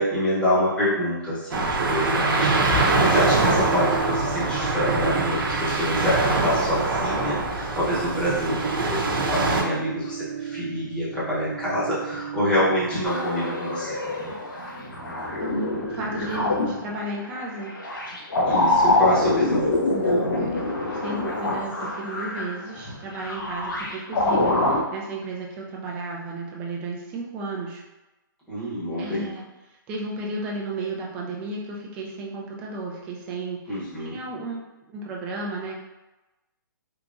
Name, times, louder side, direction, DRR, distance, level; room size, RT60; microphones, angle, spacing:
voice 1, 0.0-13.9 18.4-19.7 28.5-29.3 33.7-34.2, equal, 10° left, -9 dB, 0.9 m, -26 dB
sound 1, 1.5-9.6, right 2 dB, 90° right, 0.7 m, -23 dB
sound 2, 2.0-17.1, right 8 dB, 50° right, 1.0 m, -38 dB
sound 3, 13.0-24.8, left 2 dB, 70° left, 0.9 m, -25 dB
voice 2, 15.4-17.8 19.9-27.8 29.0-34.6 34.9-35.8, right 2 dB, 10° right, -2 dB, 0.3 m, -34 dB
3.5 x 2.8 x 2.5 m, 1.1 s
hypercardioid pair, 165°, 11 cm